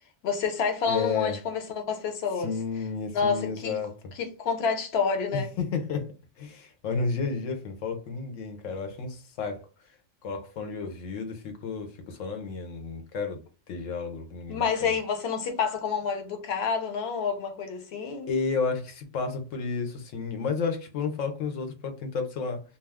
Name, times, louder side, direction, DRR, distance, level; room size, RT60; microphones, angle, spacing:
voice 1, 0.2-2.5 3.1-3.8 4.1-5.5 14.5-18.3, left 6 dB, 60° left, 0.9 m, -28 dB
voice 2, 0.9-1.3 2.4-3.9 5.3-9.6 10.2-14.9 18.3-22.6, left 5 dB, 85° left, 1.0 m, -32 dB
2.3 x 2.3 x 3.3 m
omnidirectional pair, 1.3 m